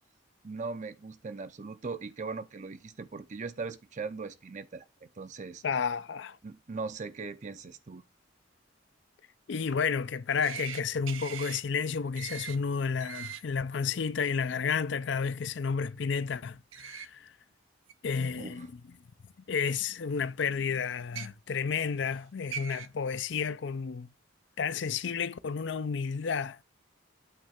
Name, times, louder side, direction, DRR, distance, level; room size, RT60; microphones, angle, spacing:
voice 1, 0.4-5.6 6.4-8.0 18.4-18.7, right 4 dB, 35° right, 0.5 m, -39 dB
voice 2, 5.6-6.4 9.5-17.3 18.0-18.8 19.5-24.1 24.6-26.6, left 6 dB, 60° left, 0.5 m, -31 dB
sound 1, 10.4-10.8 11.1-11.6 12.2-12.6 13.0-13.4 16.7-17.1 17.9-18.0 19.2-19.3 21.0-21.3 22.2-22.3 22.5-22.9, right 8 dB, 85° right, 0.8 m, -40 dB
8.9 x 3.3 x 6.4 m
head